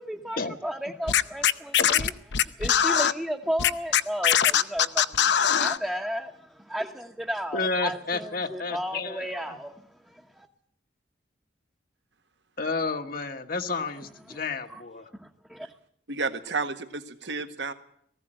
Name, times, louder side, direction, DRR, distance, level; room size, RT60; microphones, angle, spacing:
voice 1, 0.0-10.5 14.3-14.4 14.7-14.8 15.2-15.7, equal, 5° right, 1 dB, 1.1 m, -34 dB
Scratching (performance technique), 1.1-3.1 3.6-5.8, left 8 dB, 70° left, 0.7 m, -21 dB
voice 2, 7.5-9.6 12.6-15.1, left 3 dB, 50° left, 6 dB, 1.3 m, -31 dB
voice 3, 16.1-17.7, right 4 dB, 75° right, 8 dB, 1.6 m, -31 dB
19.5 x 15.5 x 8.8 m, 0.67 s
head